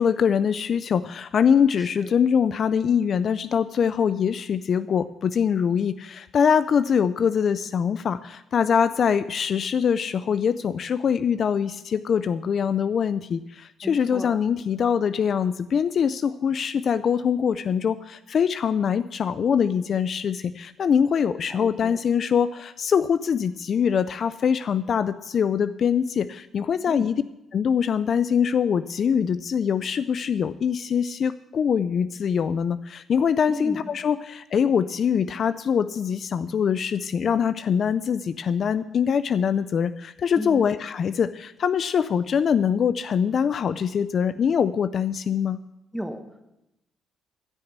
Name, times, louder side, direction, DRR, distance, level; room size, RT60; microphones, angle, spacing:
voice 1, 0.0-27.2 27.5-45.6, left 7 dB, 55° left, 14 dB, 0.4 m, -23 dB
voice 2, 1.8-2.1 13.8-14.4 21.5-22.0 26.9-27.1 33.5-33.8 40.4-40.6 45.9-46.4, equal, ahead, 7 dB, 1.5 m, -35 dB
13.5 x 6.7 x 8.1 m, 0.90 s
cardioid pair, 90°, 0 cm